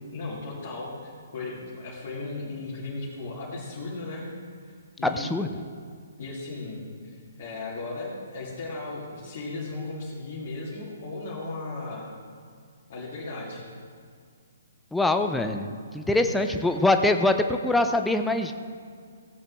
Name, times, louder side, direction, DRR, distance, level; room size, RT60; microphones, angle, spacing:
voice 1, 0.1-4.3 5.0-5.3 6.2-12.1 12.9-13.6 16.0-16.5, left 3 dB, 45° left, -8 dB, 2.5 m, -36 dB
voice 2, 5.0-5.5 14.9-18.5, left 2 dB, 5° left, 6 dB, 0.5 m, -24 dB
17.0 x 8.7 x 3.5 m, 2.1 s
figure-of-eight pair, 130°, 0 cm